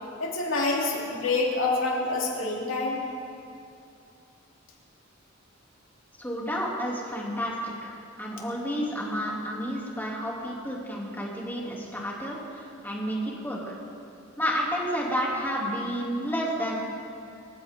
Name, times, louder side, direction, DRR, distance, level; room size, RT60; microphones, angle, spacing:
voice 1, 0.2-3.0, left 3 dB, 70° left, -3 dB, 3.2 m, -27 dB
voice 2, 6.2-7.6 7.8-13.7 14.4-16.8, equal, 10° left, -4 dB, 3.0 m, -31 dB
24.5 x 15.0 x 3.8 m, 2.5 s
head